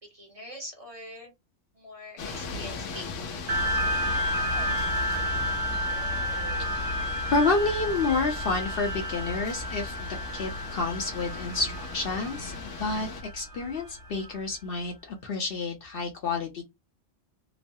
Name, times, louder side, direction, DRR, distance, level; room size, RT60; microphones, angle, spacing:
voice 1, 0.0-1.3 1.7-3.3, equal, 35° right, 0.9 m, -43 dB
sound 1, 2.2-13.2, left 4 dB, 90° left, 1.0 m, -39 dB
sound 2, 3.5-14.4, left 1 dB, 60° right, 1.0 m, -31 dB
voice 2, 7.3-10.1 10.3-16.6, left 3 dB, 55° left, 0.8 m, -29 dB
3.0 x 2.0 x 2.6 m
omnidirectional pair, 1.2 m